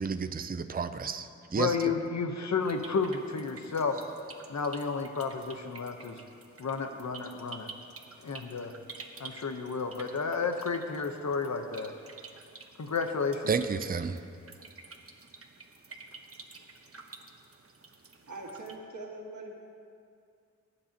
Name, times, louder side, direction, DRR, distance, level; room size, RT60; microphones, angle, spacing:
voice 1, 0.0-1.9 13.5-14.2, right 5 dB, 30° right, 9 dB, 0.5 m, -31 dB
voice 2, 1.5-4.0 4.5-6.2 6.6-7.7 8.2-8.7 9.2-11.9 12.8-13.4, left 5 dB, 70° left, 6 dB, 1.0 m, -31 dB
sound 1, 2.6-18.8, right 4 dB, 50° right, 1.1 m, -50 dB
voice 3, 18.2-19.5, right 2 dB, 80° right, -1 dB, 1.8 m, -42 dB
20.0 x 9.8 x 2.9 m, 2.4 s
cardioid pair, 50°, 29 cm